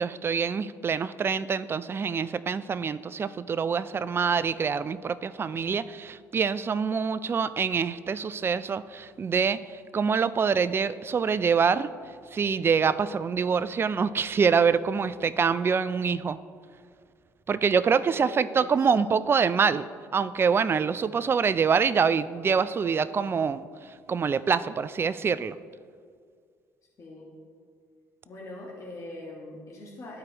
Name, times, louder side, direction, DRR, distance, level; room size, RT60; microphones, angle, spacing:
voice 1, 0.0-9.6 9.9-11.9 12.3-16.4 17.5-19.9 20.1-23.6 24.1-25.6, right 6 dB, 35° right, 15 dB, 0.3 m, -25 dB
voice 2, 18.1-18.9 27.0-27.3 28.2-30.2, left 1 dB, 45° left, -4 dB, 1.4 m, -42 dB
12.5 x 4.6 x 2.9 m, 2.1 s
hypercardioid pair, 65°, 7 cm